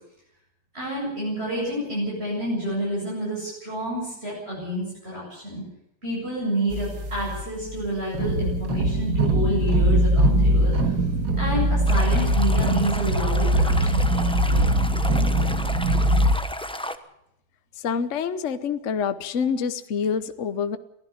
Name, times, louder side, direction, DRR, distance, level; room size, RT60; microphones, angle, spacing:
voice 1, 0.7-5.6 6.0-11.0 11.4-14.6, equal, 35° right, -6 dB, 8.3 m, -29 dB
sound 1, 6.7-16.4, right 1 dB, 70° right, 2.6 m, -21 dB
Stream, 11.9-17.0, equal, 5° left, 0.8 m, -33 dB
voice 2, 17.8-20.8, left 6 dB, 55° left, 11 dB, 1.2 m, -26 dB
22.5 x 15.5 x 7.3 m, 0.79 s
omnidirectional pair, 1.8 m